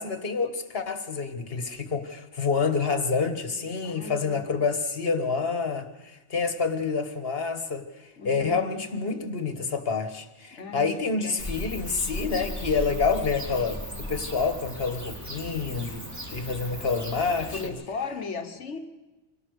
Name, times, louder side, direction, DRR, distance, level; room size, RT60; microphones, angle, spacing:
voice 1, 0.0-16.0 16.3-17.7, left 5 dB, 55° left, 7 dB, 1.8 m, -28 dB
voice 2, 3.8-4.7 8.2-8.6 10.6-11.5 17.5-18.8, left 4 dB, 80° left, 6 dB, 1.5 m, -37 dB
Bird / Cricket, 11.4-17.7, left 1 dB, 15° right, 3.1 m, -36 dB
25.5 x 18.5 x 6.5 m, 1.1 s
omnidirectional pair, 1.2 m